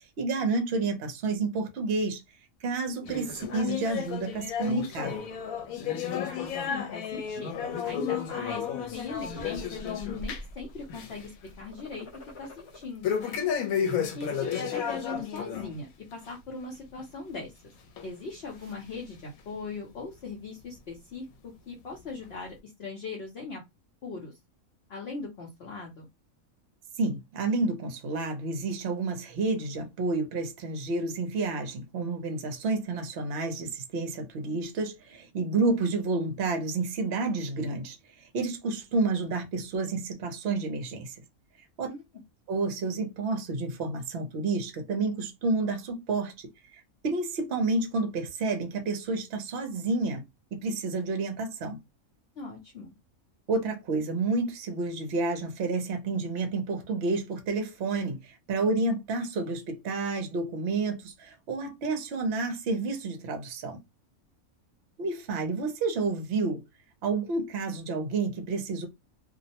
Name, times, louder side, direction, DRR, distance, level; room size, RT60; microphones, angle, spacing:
voice 1, 0.2-2.2 2.6-5.2 13.8-14.1 27.0-38.0 38.3-41.2 41.8-41.9 42.5-50.2 50.5-51.8 53.5-63.8 65.0-66.6 67.0-68.9, right 3 dB, 60° right, 0.8 m, -30 dB
sound 1, 2.7-3.7 4.2-4.4 4.7-6.0 6.3-7.5 8.1-8.6 9.1-9.9 10.2-10.7 11.6-12.8, left 3 dB, 30° left, 0.6 m, -51 dB
sound 2, 3.1-10.6 10.9-11.3 11.6-11.7 13.0-15.7 16.1-16.3 17.0-17.1 18.0-18.1 18.8-18.9, left 8 dB, 85° left, 1.1 m, -32 dB
voice 2, 6.3-12.1 12.4-13.4 14.1-17.5 18.0-23.6 24.0-24.3 24.9-26.1 41.8-42.0 52.4-52.9, left 4 dB, 55° left, 0.9 m, -40 dB
2.6 x 2.0 x 2.7 m
omnidirectional pair, 1.4 m